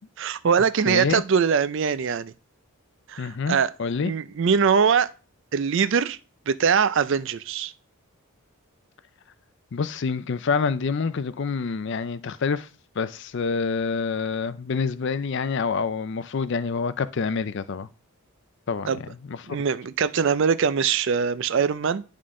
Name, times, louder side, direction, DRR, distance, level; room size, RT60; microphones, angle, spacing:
voice 1, 0.2-2.3 3.1-3.7 4.0-5.1 5.5-6.2 6.5-7.7 18.9-19.0 19.5-22.0, right 6 dB, 55° right, 0.4 m, -22 dB
voice 2, 0.9-1.2 3.2-4.1 9.7-12.7 13.0-17.9 18.7-18.9 19.3-19.6, left 5 dB, 55° left, 0.4 m, -27 dB
10.5 x 3.8 x 3.7 m
head